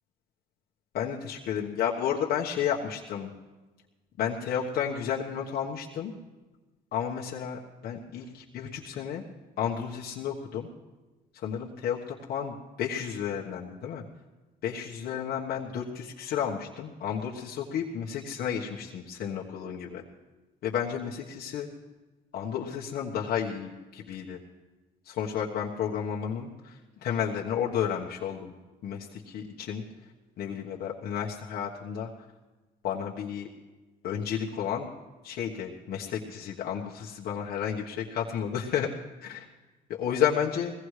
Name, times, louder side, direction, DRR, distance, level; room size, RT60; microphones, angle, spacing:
voice 1, 0.9-3.3 4.2-6.1 6.9-9.2 9.6-10.7 11.3-14.0 14.6-20.0 20.6-21.7 22.3-24.4 25.0-28.5 28.8-29.8 30.4-32.1 32.8-33.5 34.0-34.9 35.2-38.9 39.2-39.4 39.9-40.7, left 8 dB, 70° left, -3 dB, 1.3 m, -32 dB
21.0 x 17.0 x 3.3 m, 1.2 s
cardioid pair, 110°, 17 cm